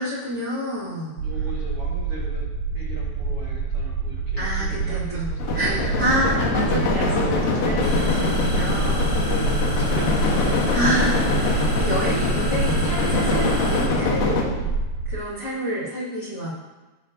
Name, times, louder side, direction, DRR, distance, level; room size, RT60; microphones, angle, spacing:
voice 1, 0.0-1.1 4.4-5.3 5.5-9.2 10.7-14.7 15.0-16.5, equal, 40° left, -9 dB, 1.6 m, -28 dB
voice 2, 1.2-5.6 9.1-10.6, right 2 dB, 60° right, -5 dB, 1.5 m, -38 dB
sound 1, 1.2-15.2, right 4 dB, 80° right, 2.0 m, -27 dB
sound 2, 5.4-14.4, left 3 dB, 70° left, 2.6 m, -24 dB
sound 3, 7.8-13.9, left 2 dB, 20° right, 0.6 m, -27 dB
17.0 x 5.7 x 2.6 m, 1.2 s
omnidirectional pair, 4.2 m